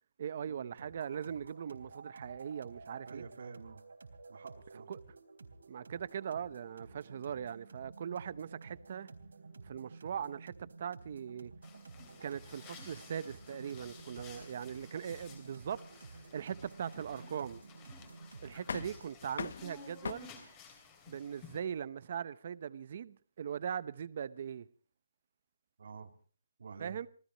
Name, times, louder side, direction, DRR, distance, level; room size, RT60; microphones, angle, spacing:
voice 1, 0.2-3.2 4.9-5.0 5.7-9.1 9.6-11.5 12.2-15.8 16.1-17.6 18.4-20.3 21.1-24.7 26.8-27.1, right 8 dB, 35° right, 0.8 m, -40 dB
sound 1, 0.8-19.2, right 4 dB, 80° right, 3.5 m, -52 dB
voice 2, 3.1-3.8 4.3-4.9 25.8-26.1 26.6-27.0, right 5 dB, 50° right, 2.3 m, -48 dB
sound 2, 11.6-21.6, left 5 dB, 15° left, 2.9 m, -55 dB
sound 3, 13.7-20.1, left 6 dB, 50° left, 0.7 m, -47 dB
27.0 x 16.5 x 3.0 m
hypercardioid pair, 175°, 0 cm